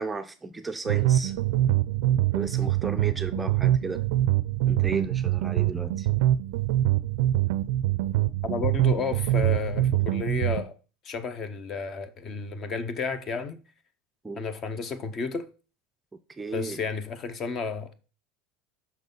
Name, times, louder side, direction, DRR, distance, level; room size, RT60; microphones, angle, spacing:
voice 1, 0.0-1.3 2.3-4.0 4.7-6.1 14.2-14.4 16.4-16.8, right 3 dB, 10° right, 0.4 m, -34 dB
sound 1, 0.9-10.6, right 13 dB, 75° right, 0.4 m, -24 dB
voice 2, 8.4-10.8 11.0-13.6 14.4-15.5 16.5-18.0, left 5 dB, 35° left, 0.7 m, -32 dB
5.5 x 3.9 x 5.3 m
supercardioid pair, 130°, 0 cm